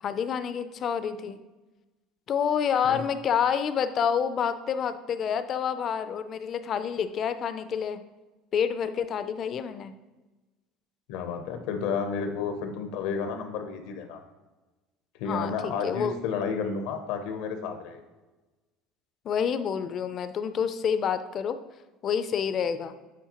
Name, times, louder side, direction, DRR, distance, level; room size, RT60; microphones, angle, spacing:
voice 1, 0.0-1.4 2.3-8.0 8.5-9.9 15.2-16.1 19.2-21.6 22.0-22.9, left 7 dB, 40° left, 11 dB, 0.4 m, -28 dB
voice 2, 11.1-14.2 15.2-18.0, left 5 dB, 80° left, 7 dB, 0.7 m, -31 dB
8.3 x 4.3 x 2.9 m, 1.2 s
cardioid pair, 140°, 0 cm